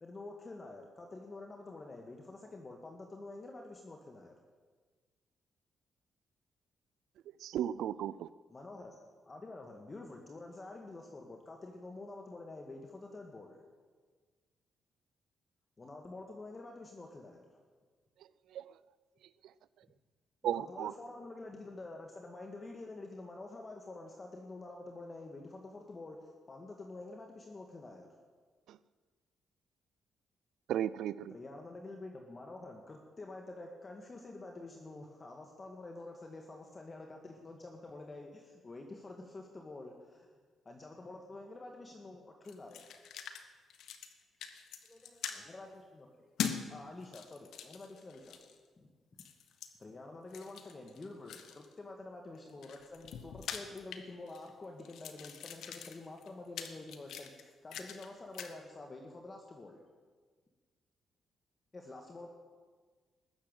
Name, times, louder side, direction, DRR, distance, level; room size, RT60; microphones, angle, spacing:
voice 1, 0.0-4.3 8.5-9.0 9.3-13.6 15.8-17.6 20.4-28.1 31.3-40.3 40.7-42.8 45.3-45.7 45.9-46.1 46.7-48.4 48.8-48.9 49.8-59.8 61.7-62.3, left 2 dB, 30° left, 1.9 m, -48 dB
voice 2, 7.4-8.3 18.5-18.7 20.4-20.9 28.7-28.8 30.7-31.3, right 11 dB, 85° right, 0.4 m, -35 dB
sound 1, 42.4-43.4 43.7-44.1 44.4-45.4 46.4-46.6 47.0-48.6 49.2-49.7 50.3-51.7 52.3-54.5 54.8-58.1 58.3-58.5, left 8 dB, 80° left, 1.4 m, -43 dB
voice 3, 44.8-45.8 46.2-46.8 47.9-48.6, left 1 dB, 10° left, 6.0 m, -66 dB
19.5 x 7.5 x 8.9 m
cardioid pair, 90°, 0 cm